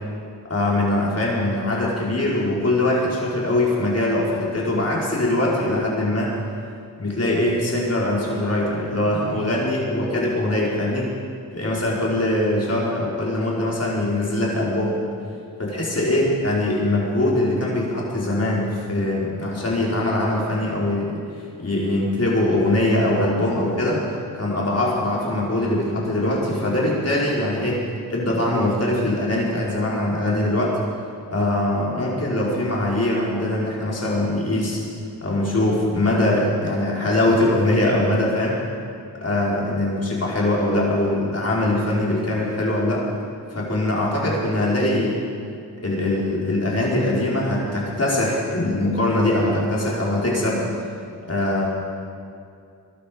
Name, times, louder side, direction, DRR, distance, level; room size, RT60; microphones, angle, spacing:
voice 1, 0.5-6.3 7.0-11.1 11.5-15.0 15.6-24.0 24.3-30.7 31.3-34.8 35.2-38.6 39.2-43.0 43.5-45.2 45.8-50.7 51.3-51.7, left 1 dB, 40° left, -4 dB, 5.0 m, -22 dB
22.0 x 12.0 x 5.4 m, 2.4 s
cardioid pair, 60°, 37 cm